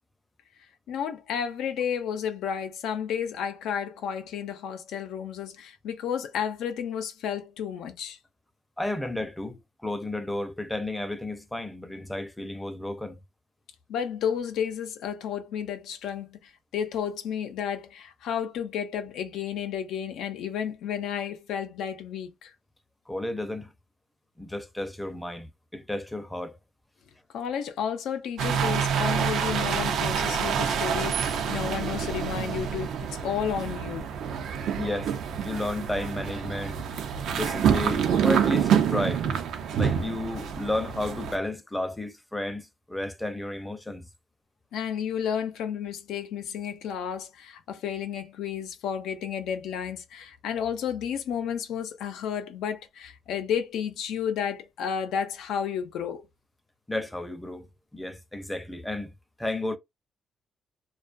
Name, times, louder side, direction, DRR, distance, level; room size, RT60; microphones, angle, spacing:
voice 1, 0.9-8.2 13.9-22.5 27.3-34.1 44.7-56.3, left 8 dB, 90° left, 0.5 m, -32 dB
voice 2, 8.8-13.2 23.1-23.7 24.4-26.6 34.8-35.1 35.4-36.9 37.3-39.3 39.8-44.1 56.9-59.1 59.4-59.8, left 1 dB, 10° left, 0.5 m, -32 dB
sound 1, 28.4-41.4, right 7 dB, 80° right, 0.5 m, -27 dB
2.3 x 2.2 x 2.5 m
cardioid pair, 95°, 0 cm